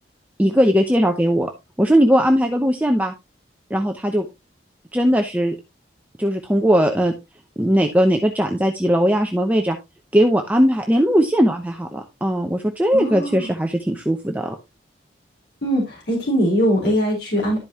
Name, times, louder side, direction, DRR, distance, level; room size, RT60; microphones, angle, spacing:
voice 1, 0.4-1.5 1.8-3.1 3.7-4.3 4.9-5.5 6.2-7.1 7.6-9.8 10.1-14.5, equal, 10° right, 3 dB, 0.7 m, -19 dB
voice 2, 12.9-13.5 15.6-17.6, equal, 60° left, -2 dB, 4.1 m, -21 dB
12.0 x 5.2 x 2.9 m, 0.23 s
head